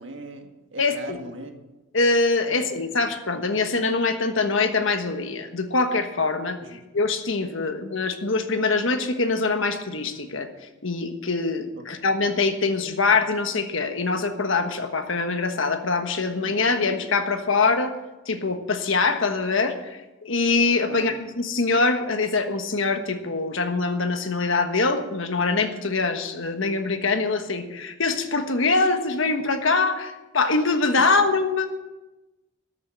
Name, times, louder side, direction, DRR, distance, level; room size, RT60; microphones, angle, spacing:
voice 1, 0.0-1.5 2.5-2.6 6.6-6.8 11.7-11.8 20.9-21.2 31.0-31.1, right 1 dB, 60° right, 4 dB, 1.8 m, -39 dB
voice 2, 0.8-1.2 1.9-6.6 6.9-10.5 10.8-17.9 18.3-31.7, left 3 dB, 65° left, 7 dB, 1.3 m, -23 dB
13.5 x 7.4 x 7.8 m, 1.0 s
head